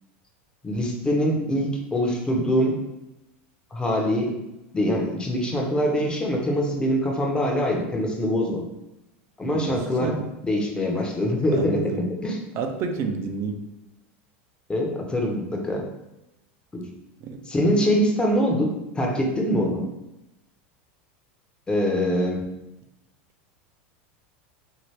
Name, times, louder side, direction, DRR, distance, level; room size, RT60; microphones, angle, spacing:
voice 1, 0.6-2.8 3.7-4.3 4.7-8.6 9.4-10.1 10.4-12.4 14.7-15.8 16.7-16.8 17.5-19.9 21.7-22.5, equal, 15° left, 1 dB, 0.7 m, -24 dB
voice 2, 9.4-10.3 11.5-12.1 12.5-13.7 17.2-17.4, right 4 dB, 45° right, 5 dB, 0.5 m, -30 dB
2.8 x 2.8 x 3.1 m, 0.94 s
hypercardioid pair, 110°, 6 cm